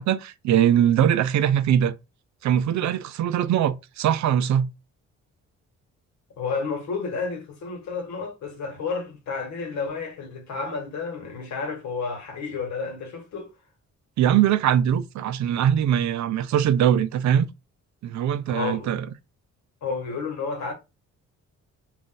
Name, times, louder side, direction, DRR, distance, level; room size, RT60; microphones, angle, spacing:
voice 1, 0.0-1.9 2.4-4.7 14.2-17.5 18.0-19.1, right 10 dB, 65° right, 0.5 m, -21 dB
voice 2, 6.4-13.5 18.5-18.9 19.8-20.7, left 4 dB, 65° left, 1.3 m, -31 dB
2.5 x 2.5 x 3.8 m
cardioid pair, 90°, 30 cm